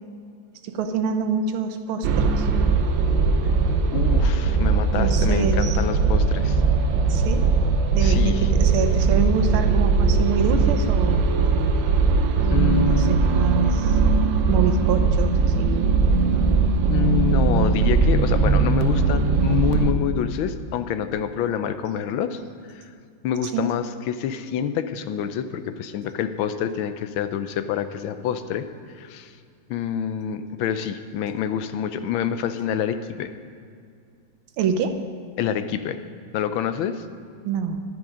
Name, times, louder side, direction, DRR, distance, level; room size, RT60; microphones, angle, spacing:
voice 1, 0.6-2.5 4.9-5.8 7.1-7.4 7.9-11.2 12.4-14.0 14.5-15.9 23.4-23.7 34.6-35.0 37.5-37.8, right 6 dB, 90° right, 6 dB, 1.7 m, -26 dB
sound 1, 2.0-19.9, right 4 dB, 70° right, 1.4 m, -20 dB
voice 2, 3.9-6.6 8.0-8.5 12.5-13.1 16.8-22.4 22.7-22.8 23.2-28.7 29.0-29.3 29.7-33.3 35.4-36.0 36.3-37.0, left 9 dB, 80° left, 10 dB, 1.4 m, -27 dB
11.5 x 11.0 x 5.1 m, 2.3 s
omnidirectional pair, 2.2 m